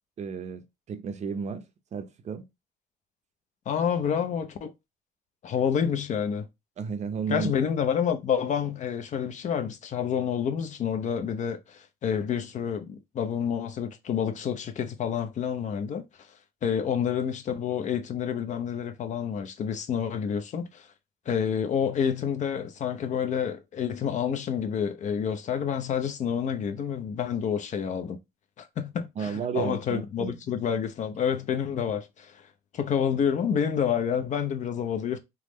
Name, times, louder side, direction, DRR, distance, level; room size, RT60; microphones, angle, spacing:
voice 1, 0.2-1.6 1.9-2.4 6.8-7.5 29.2-30.4, right 6 dB, 40° right, 0.6 m, -33 dB
voice 2, 3.7-4.7 5.4-6.5 7.3-16.0 16.6-20.9 21.3-28.2 28.6-32.5 32.7-35.2, left 8 dB, 45° left, 0.5 m, -28 dB
3.5 x 2.0 x 3.0 m
cardioid pair, 110°, 17 cm